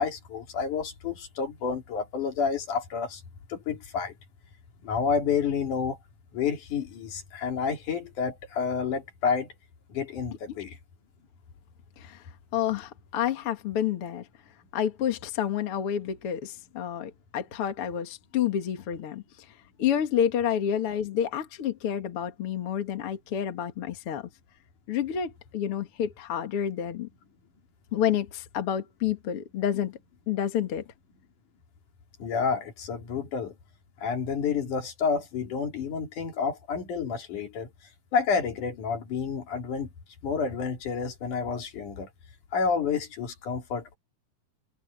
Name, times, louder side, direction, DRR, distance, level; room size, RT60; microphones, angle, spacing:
voice 1, 0.0-3.2 3.5-4.1 4.8-6.0 6.3-9.5 9.9-10.8 32.2-33.5 34.0-37.7 38.1-39.9 40.2-42.1 42.5-44.0, left 6 dB, 75° left, 4.2 m, -29 dB
voice 2, 12.5-14.3 14.7-19.2 19.8-24.3 24.9-27.1 27.9-30.0 30.3-30.8, left 9 dB, 50° left, 2.4 m, -29 dB
omnidirectional pair, 3.6 m